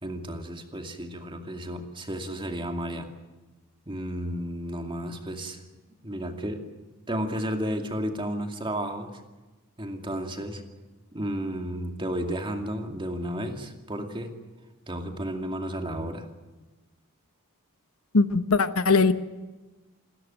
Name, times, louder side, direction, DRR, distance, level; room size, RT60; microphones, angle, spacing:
voice 1, 0.0-3.1 3.9-5.6 6.0-6.6 7.1-9.2 9.8-10.6 11.1-14.3 14.9-16.2, equal, 20° right, 4 dB, 2.4 m, -32 dB
voice 2, 18.1-19.1, left 4 dB, 70° left, 11 dB, 1.1 m, -20 dB
28.5 x 13.5 x 9.1 m, 1.2 s
head